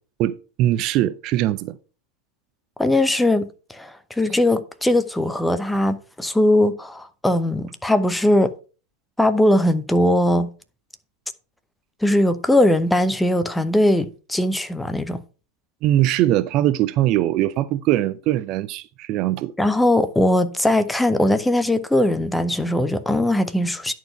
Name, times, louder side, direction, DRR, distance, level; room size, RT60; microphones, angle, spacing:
voice 1, 0.2-1.8 15.8-19.5, right 14 dB, 40° right, 0.4 m, -21 dB
voice 2, 2.8-8.5 9.2-10.5 12.0-15.2 19.6-23.9, left 1 dB, 5° left, 0.8 m, -20 dB
10.5 x 4.6 x 5.7 m
figure-of-eight pair, 90°, 0 cm